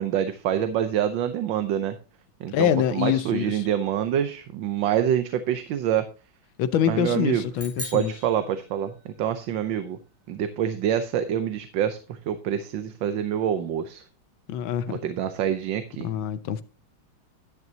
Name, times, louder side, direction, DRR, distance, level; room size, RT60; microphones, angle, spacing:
voice 1, 0.0-2.0 2.4-6.1 6.9-7.4 7.9-10.0 10.3-14.0 14.9-16.1, right 10 dB, 70° right, 1.4 m, -26 dB
voice 2, 2.5-3.6 6.6-8.1 14.5-15.0 16.0-16.6, left 9 dB, 75° left, 1.5 m, -25 dB
sound 1, 7.5-9.2, equal, 5° right, 2.9 m, -39 dB
11.0 x 10.5 x 2.8 m
omnidirectional pair, 2.2 m